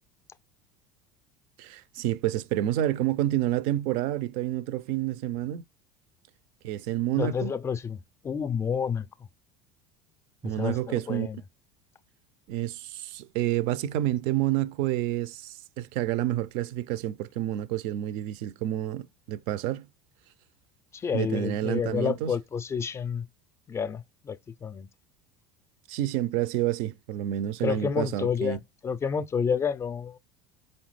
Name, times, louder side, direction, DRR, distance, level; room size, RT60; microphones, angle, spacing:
voice 1, 1.6-5.6 6.6-7.5 10.4-11.3 12.5-19.9 21.1-22.3 25.9-28.6, right 13 dB, 65° right, 0.4 m, -29 dB
voice 2, 7.1-9.1 10.4-11.4 20.9-23.3 23.7-24.9 27.6-30.2, left 6 dB, 25° left, 0.4 m, -30 dB
4.1 x 3.5 x 3.2 m
hypercardioid pair, 85°, 10 cm